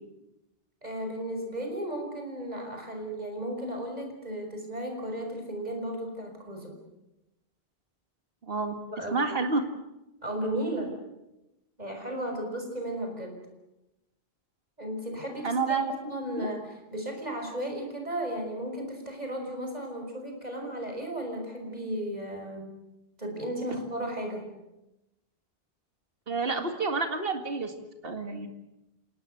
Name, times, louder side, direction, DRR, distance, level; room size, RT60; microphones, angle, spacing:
voice 1, 0.8-6.7 8.9-9.2 10.2-10.9 11.8-13.4 14.8-22.6 23.2-24.4, right 1 dB, 40° right, 3 dB, 6.1 m, -34 dB
voice 2, 8.4-8.7 9.1-9.6 15.4-15.9 16.4-16.5 26.3-27.7 28.0-28.5, right 4 dB, 65° right, 5 dB, 2.3 m, -29 dB
28.5 x 18.0 x 8.0 m, 0.95 s
omnidirectional pair, 1.0 m